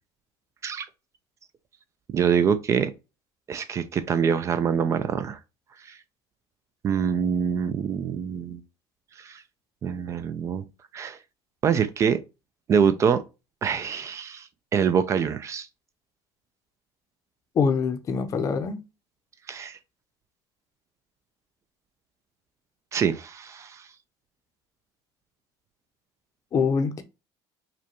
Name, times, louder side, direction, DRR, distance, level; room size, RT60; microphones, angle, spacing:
voice 1, 2.1-2.9 3.5-5.4 6.8-8.6 9.2-9.4 9.8-10.6 10.9-11.2 11.6-12.2 12.7-13.2 13.6-15.7 19.5-19.8 22.9-23.8, right 7 dB, 30° right, 0.4 m, -25 dB
voice 2, 17.6-18.8 26.5-27.0, left 5 dB, 35° left, 0.6 m, -24 dB
4.9 x 2.2 x 2.9 m
cardioid pair, 135°, 9 cm